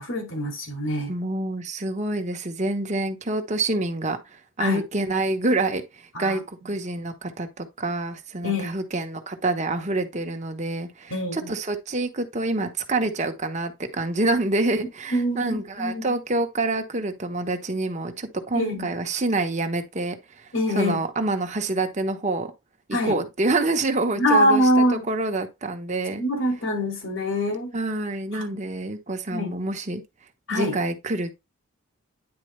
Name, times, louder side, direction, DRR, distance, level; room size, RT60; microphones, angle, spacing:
voice 1, 0.0-1.1 4.6-4.8 6.1-6.4 8.4-8.7 11.1-11.5 15.1-15.9 18.5-18.8 20.5-21.0 22.9-23.2 24.2-25.1 26.2-27.7 28.3-28.4 29.3-29.5 30.5-30.7, equal, 70° left, 2.4 m, -24 dB
voice 2, 1.1-22.5 22.9-26.2 27.7-30.0 30.5-31.3, right 2 dB, 35° right, 1.0 m, -27 dB
9.7 x 4.1 x 3.1 m
head